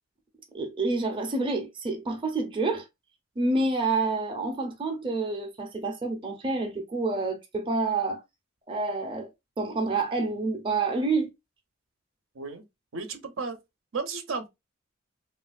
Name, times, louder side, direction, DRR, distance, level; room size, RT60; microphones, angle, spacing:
voice 1, 0.5-2.8 3.4-8.2 8.7-9.3 9.6-11.3, right 3 dB, 25° right, 0.6 m, -28 dB
voice 2, 12.3-12.7 12.9-13.6 13.9-14.5, right 4 dB, 80° right, 0.7 m, -33 dB
3.1 x 2.4 x 2.3 m
head